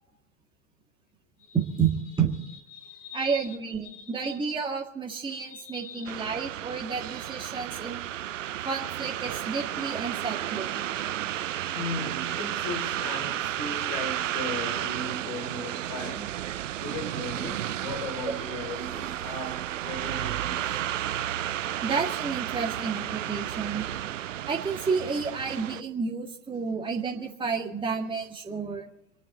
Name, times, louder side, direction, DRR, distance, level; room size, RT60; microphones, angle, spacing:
voice 1, 1.5-2.4 3.1-8.1 8.6-10.7 21.8-23.9 24.5-28.9, right 5 dB, 10° right, 1.9 m, -30 dB
voice 2, 2.7-3.6 3.8-4.3 5.3-6.1 11.1-11.3 11.7-20.8, left 2 dB, 50° left, 4.2 m, -38 dB
sound 1, 6.1-25.8, right 12 dB, 70° right, 0.6 m, -32 dB
26.0 x 10.5 x 4.0 m
figure-of-eight pair, 90°, 39 cm